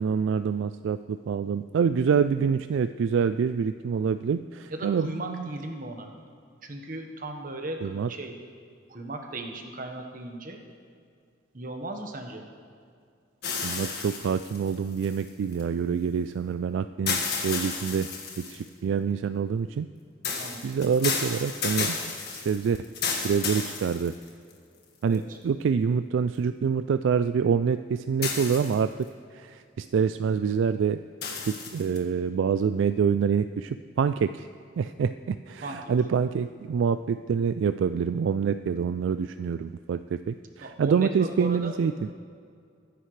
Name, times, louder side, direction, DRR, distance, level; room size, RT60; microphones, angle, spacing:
voice 1, 0.0-5.5 7.8-8.1 13.6-18.1 18.5-19.9 20.6-22.0 22.3-22.8 23.2-24.1 25.0-28.9 29.3-31.0 31.4-34.5 34.8-42.1, right 6 dB, 70° right, 11 dB, 0.3 m, -26 dB
voice 2, 4.7-6.1 6.6-8.3 8.9-10.6 11.5-12.5 20.4-20.6 25.1-25.4 35.6-35.8 40.6-41.7, right 1 dB, 45° right, 3 dB, 1.3 m, -36 dB
sound 1, 13.4-15.6 17.1-18.7 20.2-24.5 25.1-25.2 28.2-29.0 31.2-32.0, left 5 dB, 55° left, 1.7 m, -32 dB
22.0 x 10.0 x 3.3 m, 2.3 s
head